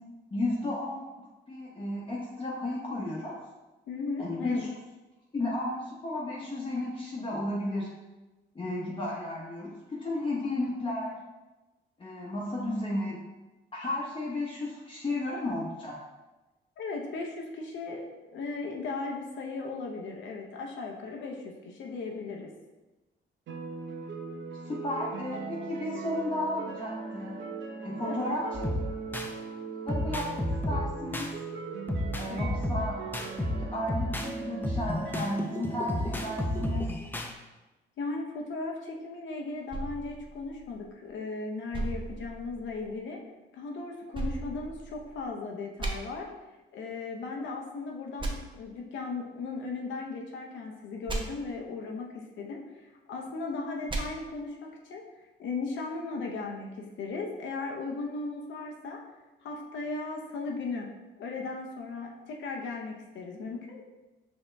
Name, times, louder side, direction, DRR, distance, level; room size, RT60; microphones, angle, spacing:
voice 1, 0.3-1.0 1.5-3.3 4.2-4.7 5.3-7.9 8.5-11.2 12.0-13.2 13.7-16.0 24.6-27.4 27.8-28.4 29.8-31.3 32.1-33.0 33.6-36.9, left 1 dB, 25° left, -6 dB, 0.9 m, -33 dB
voice 2, 3.9-4.7 16.8-18.0 18.3-22.5 28.1-28.4 32.3-32.6 38.0-43.2 43.5-46.3 46.7-55.0 55.4-59.0 59.4-60.9 61.2-63.8, left 3 dB, 70° left, 1 dB, 0.7 m, -37 dB
sound 1, 23.5-36.7, right 4 dB, 65° right, 0.7 m, -39 dB
sound 2, 28.5-29.3 29.9-31.3 31.9-34.3 34.6-37.3, left 1 dB, 10° left, 0.5 m, -32 dB
sound 3, 39.7-41.1 41.7-43.0 44.1-45.3 45.8-45.9 48.2-48.3 51.1-51.2 53.9-54.0, right 2 dB, 25° right, 0.8 m, -35 dB
5.3 x 2.8 x 3.3 m, 1.1 s
cardioid pair, 90°, 20 cm